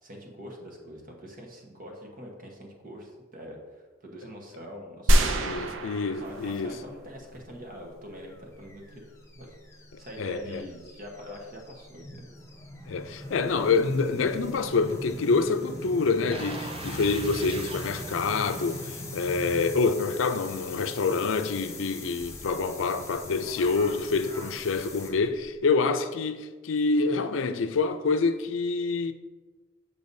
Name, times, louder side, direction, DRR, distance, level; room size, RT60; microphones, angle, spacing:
voice 1, 0.0-5.6 6.0-9.0 9.3-9.5 10.0-12.3, equal, 45° right, 1.1 m, -44 dB
sound 1, 5.1-7.0 7.3-7.4, right 1 dB, 80° right, 0.6 m, -25 dB
voice 2, 5.4-6.8 9.9-10.6 12.9-29.1, left 4 dB, 80° left, 0.4 m, -27 dB
sound 2, 6.1-25.6, left 1 dB, 15° left, 0.7 m, -42 dB
sound 3, 16.3-19.3 19.7-19.8, right 3 dB, 30° right, 0.5 m, -41 dB
6.9 x 6.7 x 2.7 m
head